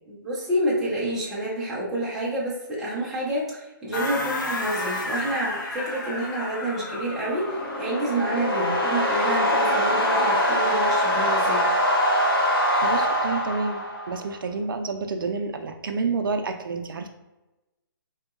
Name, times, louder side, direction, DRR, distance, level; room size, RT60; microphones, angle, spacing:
voice 1, 0.1-11.7, right 1 dB, 5° right, -9 dB, 0.4 m, -28 dB
sound 1, 3.9-8.3, left 2 dB, 55° left, 0.7 m, -32 dB
sound 2, 7.2-14.3, equal, 85° left, 1.3 m, -23 dB
voice 2, 12.7-17.1, right 4 dB, 65° right, 5 dB, 0.4 m, -29 dB
3.7 x 2.8 x 2.4 m, 1.0 s
hypercardioid pair, 165°, 12 cm